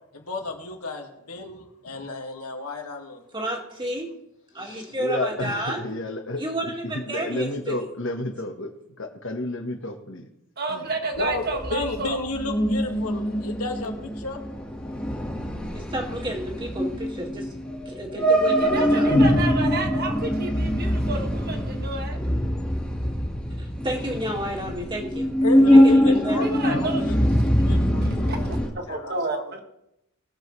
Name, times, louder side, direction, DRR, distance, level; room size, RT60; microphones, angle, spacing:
voice 1, 0.1-3.2 11.2-14.4 15.1-15.3 25.4-28.5 28.9-29.6, left 2 dB, 90° left, 2 dB, 2.0 m, -32 dB
voice 2, 3.3-4.1 4.5-5.8 6.4-7.8 15.7-17.5 17.9-19.2 23.6-25.3 25.6-26.4, right 1 dB, 20° right, 0 dB, 2.0 m, -31 dB
voice 3, 4.6-8.7 9.0-10.3 10.7-10.9, left 1 dB, 55° left, 4 dB, 1.3 m, -31 dB
voice 4, 10.6-12.2 18.6-22.2 26.4-27.0 28.0-29.6, right 3 dB, 45° right, 3 dB, 1.5 m, -31 dB
sound 1, 11.2-28.7, equal, 5° left, 1.8 m, -23 dB
20.5 x 7.3 x 3.3 m, 0.84 s
head